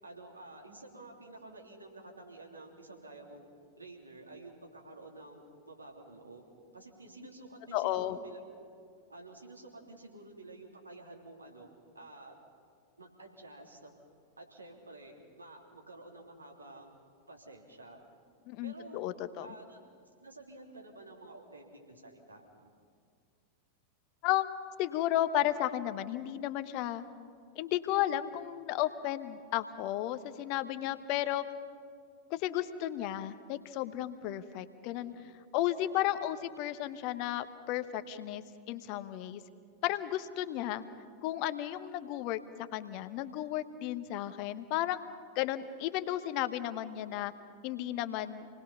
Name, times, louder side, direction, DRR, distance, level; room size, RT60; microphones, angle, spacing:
voice 1, 0.0-3.5 3.7-5.4 5.7-6.4 6.7-8.7 9.1-11.7 11.9-12.3 13.0-13.9 14.4-16.9 17.3-18.0 18.6-19.1 19.4-22.7 28.0-28.2 34.9-35.2 36.2-36.3 44.1-44.2, right 2 dB, 80° right, 0 dB, 3.0 m, -51 dB
voice 2, 7.7-8.2 18.5-19.5 24.2-24.5 24.8-27.0 27.6-31.4 32.3-35.1 35.5-39.4 39.8-40.8 41.2-42.4 42.7-45.0 45.3-47.3 47.6-48.5, left 13 dB, 45° left, 11 dB, 1.0 m, -33 dB
28.0 x 20.0 x 5.6 m, 2.2 s
figure-of-eight pair, 90°, 0 cm